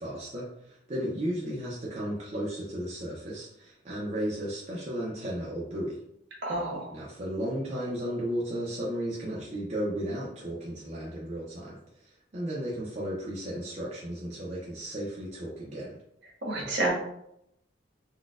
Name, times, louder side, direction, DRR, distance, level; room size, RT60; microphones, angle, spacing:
voice 1, 0.0-6.0 6.9-11.8 12.0-16.0, equal, 40° right, -6 dB, 0.5 m, -34 dB
voice 2, 6.4-6.9 16.4-16.9, right 2 dB, 65° right, -2 dB, 1.1 m, -29 dB
3.9 x 2.2 x 2.4 m, 0.76 s
head